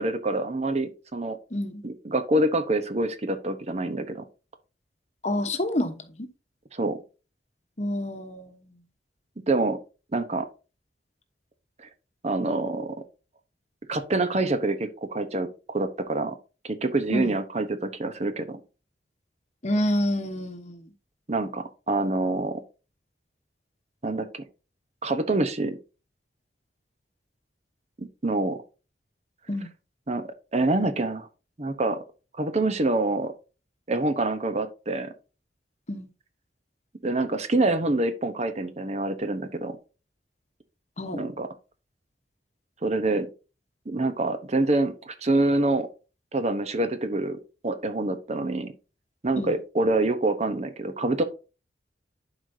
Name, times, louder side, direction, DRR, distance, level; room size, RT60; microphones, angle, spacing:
voice 1, 0.0-1.4 1.8-4.2 6.7-7.0 9.5-9.8 10.1-10.5 11.8-11.9 12.2-13.0 13.9-16.3 16.6-18.6 21.3-22.6 24.0-24.4 25.0-25.8 28.0-28.6 30.1-30.2 30.5-31.3 31.6-32.0 32.4-33.3 33.9-35.1 37.0-39.8 41.1-41.5 42.8-43.3 43.9-45.9 46.3-47.4 47.6-48.7 49.2-51.2, right 2 dB, 40° right, 0.8 m, -26 dB
voice 2, 1.5-1.8 5.2-6.3 7.8-8.7 17.1-17.4 19.6-20.8 29.5-29.7 35.9-36.1 41.0-41.2 49.4-49.6, left 1 dB, 40° left, 1.0 m, -28 dB
11.5 x 4.8 x 2.7 m
head